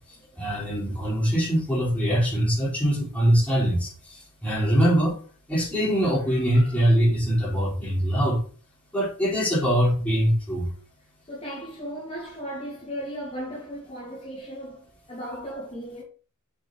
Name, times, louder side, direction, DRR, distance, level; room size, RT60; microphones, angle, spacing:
voice 1, 0.4-5.2 5.5-8.4 8.9-10.7, equal, 5° left, 4.7 m, -23 dB
voice 2, 6.5-6.8 11.3-16.0, equal, 25° left, 3.1 m, -36 dB
7.2 x 6.9 x 5.1 m
head